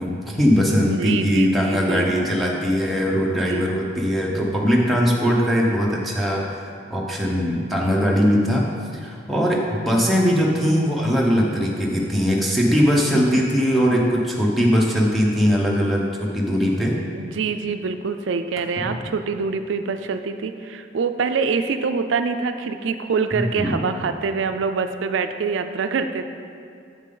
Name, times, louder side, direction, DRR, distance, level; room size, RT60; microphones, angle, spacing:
voice 1, 0.0-6.6 6.9-8.6 9.0-17.0 23.3-23.8, equal, ahead, -3 dB, 0.8 m, -20 dB
voice 2, 0.9-2.1 3.3-3.7 17.1-26.2, right 5 dB, 80° right, 8 dB, 0.4 m, -25 dB
7.5 x 7.2 x 3.8 m, 2.4 s
head